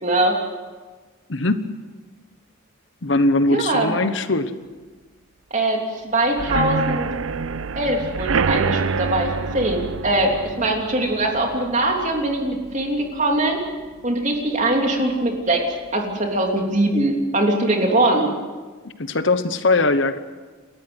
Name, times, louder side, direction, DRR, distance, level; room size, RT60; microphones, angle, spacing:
voice 1, 0.0-0.4 3.5-4.0 5.5-7.1 7.7-13.6 14.0-15.6 15.9-18.3, right 1 dB, 35° right, 2 dB, 3.2 m, -21 dB
voice 2, 1.3-1.6 3.0-4.5 18.8-20.2, left 2 dB, 60° left, 11 dB, 1.1 m, -20 dB
sound 1, 6.3-14.0 14.4-14.7 15.0-15.1 15.5-15.6, right 4 dB, 80° right, 0.7 m, -27 dB
29.5 x 13.5 x 8.0 m, 1.4 s
head